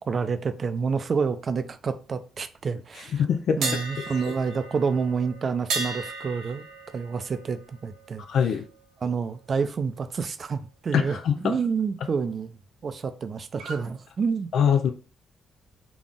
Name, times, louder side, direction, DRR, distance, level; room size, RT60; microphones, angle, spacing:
voice 1, 0.1-3.3 3.6-6.7 6.9-8.2 9.0-12.6 12.8-14.5, right 5 dB, 45° right, 0.5 m, -28 dB
voice 2, 3.2-3.6 8.3-8.6 10.9-11.5 14.5-14.9, left 7 dB, 70° left, 0.4 m, -22 dB
sound 1, 3.6-9.5 9.8-10.1 13.6-13.9, right 3 dB, 85° right, 1.1 m, -36 dB
4.0 x 2.4 x 3.6 m
cardioid pair, 90°, 0 cm